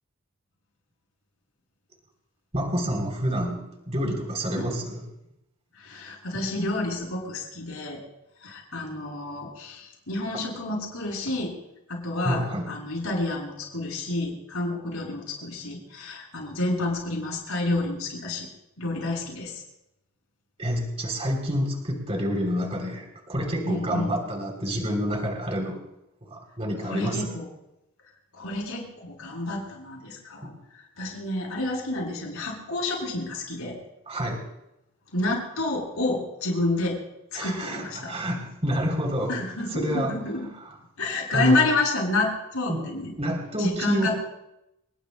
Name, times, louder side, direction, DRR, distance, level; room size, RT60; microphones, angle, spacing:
voice 1, 2.5-5.0 10.3-10.4 12.2-12.7 20.6-25.8 26.2-27.3 30.4-30.5 34.1-34.4 37.3-39.3 39.7-40.1 41.3-41.6 42.7-42.8 43.2-44.1, equal, 30° right, 1 dB, 3.2 m, -28 dB
voice 2, 5.8-8.0 8.4-11.6 11.9-18.5 18.8-19.6 23.6-24.2 26.8-27.5 28.3-33.8 35.1-37.0 37.3-38.1 39.3-40.5 41.0-43.1 43.6-44.2, left 2 dB, 80° left, -1 dB, 7.2 m, -29 dB
30.0 x 20.0 x 2.2 m, 0.87 s
head